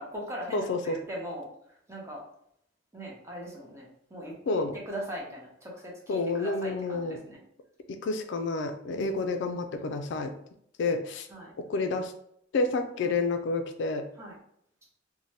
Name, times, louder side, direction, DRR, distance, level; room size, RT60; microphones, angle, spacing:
voice 1, 0.0-1.5 1.9-2.2 2.9-4.3 4.9-7.4 8.9-9.2 11.3-11.5 13.0-13.1 14.2-14.3, equal, 15° right, -4 dB, 0.7 m, -40 dB
voice 2, 0.5-1.0 4.5-4.8 6.1-7.2 7.9-10.3 10.8-11.3 11.7-12.1 12.5-14.1, left 3 dB, 65° left, 6 dB, 0.3 m, -29 dB
2.7 x 2.1 x 3.2 m, 0.71 s
head